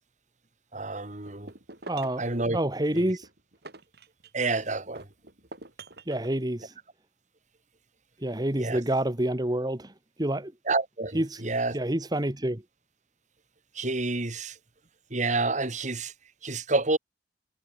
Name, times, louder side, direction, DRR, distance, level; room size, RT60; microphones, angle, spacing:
voice 1, 0.7-1.5 2.2-2.6 2.9-3.0 4.3-5.1 8.5-8.8 10.6-11.8 13.7-14.6 15.1-16.1 16.4-17.0, right 3 dB, 45° right, 2.4 m, -29 dB
sound 1, 1.3-2.3 3.0-4.5 5.0-6.3, right 3 dB, 65° right, 5.0 m, -45 dB
voice 2, 1.9-2.2 2.5-3.3 6.1-6.7 8.2-9.9 10.2-10.5 11.1-11.4 11.7-12.6, right 1 dB, 25° right, 1.7 m, -28 dB
head